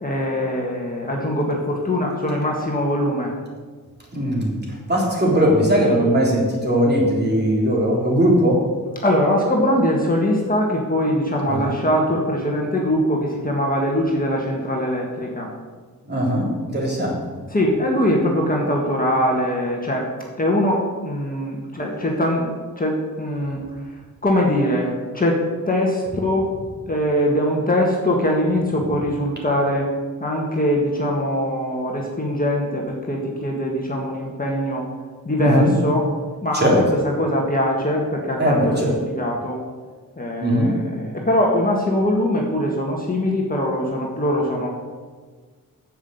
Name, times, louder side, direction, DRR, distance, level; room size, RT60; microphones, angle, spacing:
voice 1, 0.0-3.3 9.0-15.5 17.5-20.1 20.4-22.5 22.8-23.7 24.2-26.5 26.9-29.9 30.2-34.9 35.3-36.1 36.4-39.6 40.2-44.7, left 1 dB, 25° left, -1 dB, 1.7 m, -22 dB
voice 2, 4.1-4.6 4.9-8.7 11.5-11.7 16.1-17.2 35.4-35.7 36.5-36.8 38.4-38.9 40.4-40.8, equal, 30° right, -4 dB, 3.4 m, -19 dB
9.6 x 7.6 x 8.0 m, 1.5 s
wide cardioid pair, 140°, 35 cm